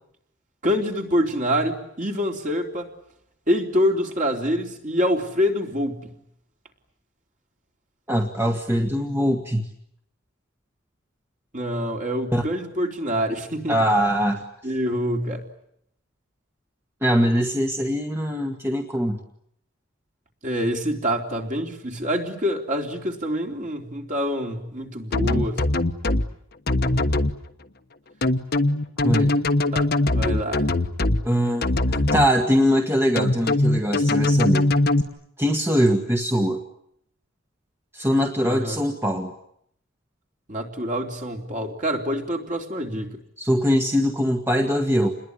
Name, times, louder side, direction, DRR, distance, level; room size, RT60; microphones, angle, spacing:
voice 1, 0.6-2.9 3.5-6.1 11.5-13.7 14.6-15.4 20.4-25.6 29.7-29.9 30.1-30.7 38.4-38.8 40.5-43.2, equal, 35° right, 2 dB, 3.5 m, -26 dB
voice 2, 8.1-9.7 12.3-12.4 13.7-14.4 17.0-19.2 29.0-29.3 31.2-34.7 35.4-36.6 37.9-39.3 43.4-45.2, equal, 10° right, 2 dB, 1.6 m, -22 dB
sound 1, 25.1-26.2 26.7-27.3 28.2-31.2 31.6-32.3 33.2-35.0, left 2 dB, 50° left, 1.3 m, -21 dB
28.5 x 21.0 x 9.8 m, 0.74 s
head